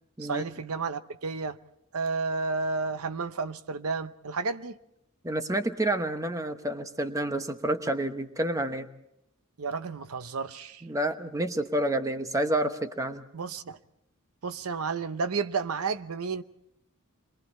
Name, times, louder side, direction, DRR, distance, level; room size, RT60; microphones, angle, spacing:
voice 1, 0.2-1.6 1.9-4.8 9.6-10.8 13.3-13.8 14.4-16.4, right 4 dB, 85° right, 0.8 m, -31 dB
voice 2, 5.2-8.9 10.8-13.2, right 1 dB, 15° right, 1.0 m, -29 dB
28.5 x 22.5 x 4.3 m
head